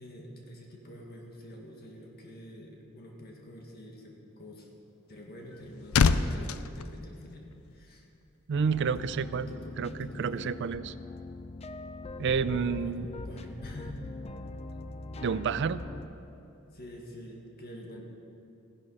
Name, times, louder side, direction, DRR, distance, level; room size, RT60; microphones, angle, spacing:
voice 1, 0.0-4.7 5.1-8.1 9.0-10.5 12.8-14.0 16.7-18.0, equal, 50° left, 0 dB, 1.8 m, -47 dB
sound 1, 5.2-7.9 8.1-8.4, left 5 dB, 85° left, 0.5 m, -28 dB
sound 2, 8.5-16.1, left 2 dB, 30° left, 0.6 m, -41 dB
voice 2, 8.5-10.9 12.2-13.1 15.2-15.8, right 6 dB, 60° right, 15 dB, 0.4 m, -30 dB
15.5 x 11.0 x 5.5 m, 2.8 s
head